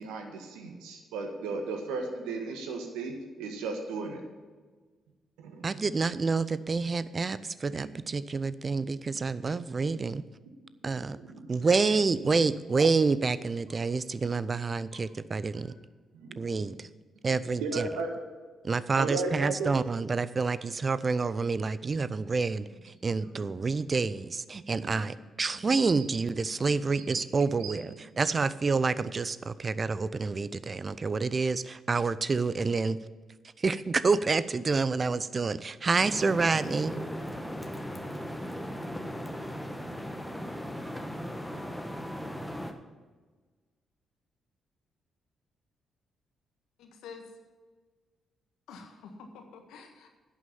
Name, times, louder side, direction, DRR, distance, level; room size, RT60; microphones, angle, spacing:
voice 1, 0.0-4.2 5.4-5.9 11.2-11.7 16.1-16.6 17.6-18.1 19.0-19.7 23.2-23.4 24.8-25.0 26.9-27.0 27.6-27.7, right 3 dB, 80° right, 4 dB, 1.5 m, -36 dB
voice 2, 5.6-10.2 10.8-11.2 11.5-15.7 16.4-16.9 17.2-17.9 18.6-33.0 33.6-36.9, right 4 dB, 40° right, 16 dB, 0.5 m, -28 dB
sound 1, 36.0-42.7, equal, 5° left, 1.3 m, -37 dB
voice 3, 46.8-47.2 48.7-50.1, left 5 dB, 75° left, 4 dB, 1.5 m, -47 dB
11.0 x 6.4 x 7.1 m, 1.4 s
hypercardioid pair, 40°, 0 cm